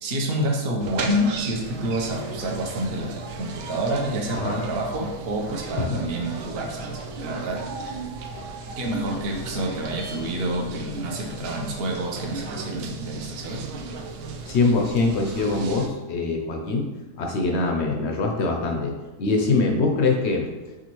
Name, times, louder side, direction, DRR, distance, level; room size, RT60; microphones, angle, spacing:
voice 1, 0.0-8.0 8.8-13.7, right 1 dB, 50° right, 0 dB, 0.8 m, -28 dB
sound 1, 0.8-15.9, right 4 dB, 75° right, 1.0 m, -35 dB
voice 2, 14.5-16.9 17.2-18.9 19.2-20.5, left 3 dB, 70° left, 1 dB, 0.6 m, -23 dB
5.0 x 3.5 x 3.0 m, 1.2 s
omnidirectional pair, 1.7 m